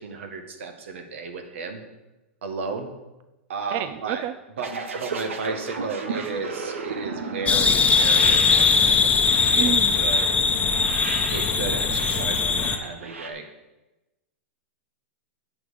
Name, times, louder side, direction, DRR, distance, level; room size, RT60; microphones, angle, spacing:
voice 1, 0.0-1.8 2.4-2.9 3.5-4.2 4.6-9.1 9.4-10.4 11.2-13.5, right 4 dB, 75° right, 5 dB, 1.8 m, -34 dB
voice 2, 3.7-4.3 9.6-9.9, right 11 dB, 40° right, 12 dB, 0.4 m, -29 dB
sound 1, 4.6-13.3, right 4 dB, 90° right, 1.4 m, -34 dB
sound 2, 7.5-12.8, left 5 dB, 20° left, 1.0 m, -20 dB
9.2 x 6.2 x 7.0 m, 1.0 s
hypercardioid pair, 125°, 7 cm